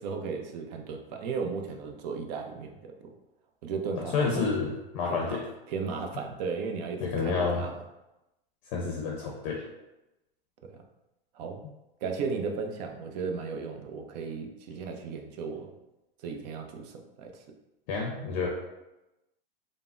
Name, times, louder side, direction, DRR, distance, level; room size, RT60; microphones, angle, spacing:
voice 1, 0.0-3.1 3.6-4.5 5.1-7.8 10.7-10.8 11.3-11.6 12.0-15.7 16.2-17.4, right 5 dB, 45° right, 4 dB, 0.4 m, -35 dB
voice 2, 4.0-5.4 7.0-7.6 8.7-9.6 17.9-18.5, left 4 dB, 45° left, -1 dB, 0.6 m, -29 dB
3.3 x 2.0 x 2.4 m, 0.95 s
hypercardioid pair, 115°, 30 cm